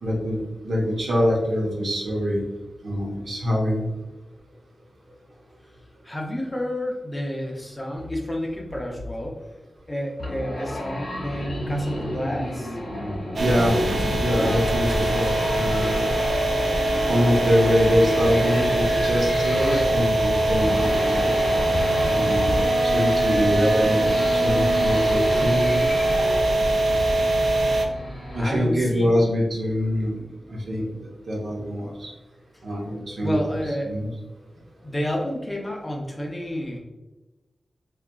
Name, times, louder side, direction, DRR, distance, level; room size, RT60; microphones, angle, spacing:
voice 1, 0.0-2.4 2.8-3.9 13.4-13.8 14.2-16.1 17.1-21.3 22.2-25.8 28.3-30.2 30.5-30.9 31.3-32.1 32.6-33.4 33.9-34.1, equal, 70° right, -3 dB, 0.7 m, -24 dB
voice 2, 6.0-9.4 9.9-12.8 27.7-29.2 32.5-32.6 33.2-33.9 34.5-36.8, left 1 dB, 20° left, -1 dB, 0.4 m, -31 dB
sound 1, 10.2-28.6, equal, 75° left, 0.7 m, -30 dB
sound 2, 13.4-27.9, right 1 dB, 55° right, 0.3 m, -22 dB
2.8 x 2.3 x 2.2 m, 1.1 s
wide cardioid pair, 130°, 0 cm